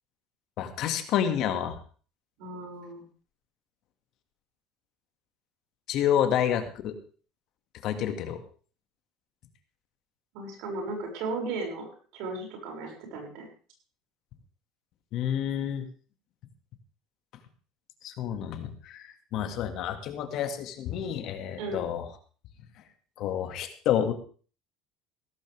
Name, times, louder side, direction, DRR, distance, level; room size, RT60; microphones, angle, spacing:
voice 1, 0.6-1.8 5.9-7.0 7.8-8.4 15.1-15.9 18.0-22.0 23.2-24.1, left 9 dB, 60° left, 7 dB, 2.2 m, -29 dB
voice 2, 2.4-3.0 10.3-11.8 12.1-13.5 21.6-21.9, right 3 dB, 75° right, 1 dB, 6.6 m, -35 dB
16.5 x 14.5 x 3.6 m, 0.40 s
supercardioid pair, 105°, 0 cm